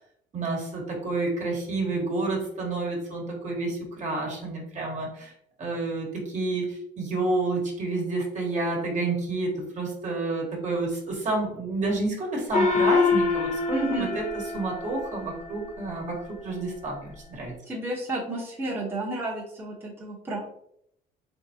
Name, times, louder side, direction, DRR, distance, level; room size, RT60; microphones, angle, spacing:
voice 1, 0.3-5.3 5.6-14.2 14.5-17.5, right 2 dB, 45° right, -1 dB, 1.3 m, -29 dB
Gong, 12.5-15.4, left 4 dB, 45° left, 1.0 m, -25 dB
voice 2, 13.7-14.1 17.7-20.4, right 2 dB, 15° right, -5 dB, 1.0 m, -31 dB
3.6 x 3.3 x 2.8 m, 0.73 s
cardioid pair, 110°, 17 cm